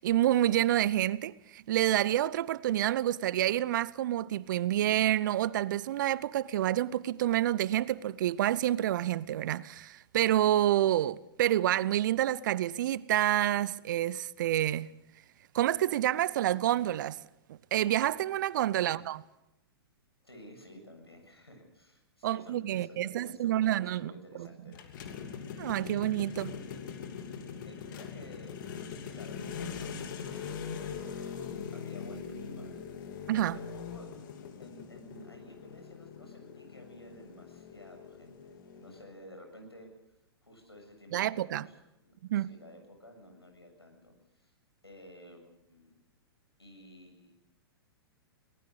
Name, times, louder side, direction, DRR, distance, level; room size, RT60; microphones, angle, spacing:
voice 1, 0.0-14.9 15.5-17.2 17.5-19.2 22.2-24.1 24.4-24.5 25.6-26.5 33.3-33.6 41.1-41.7 42.3-42.5, right 13 dB, 50° right, 0.7 m, -28 dB
voice 2, 20.2-25.3 26.3-26.4 27.3-28.6 29.1-31.0 31.7-32.8 33.5-34.3 34.6-39.9 40.4-44.5 44.8-46.0 46.6-47.3, left 1 dB, 90° left, 7.3 m, -53 dB
sound 1, 24.7-39.0, left 6 dB, 55° left, 2.9 m, -42 dB
24.0 x 19.0 x 6.5 m
figure-of-eight pair, 105°, 13 cm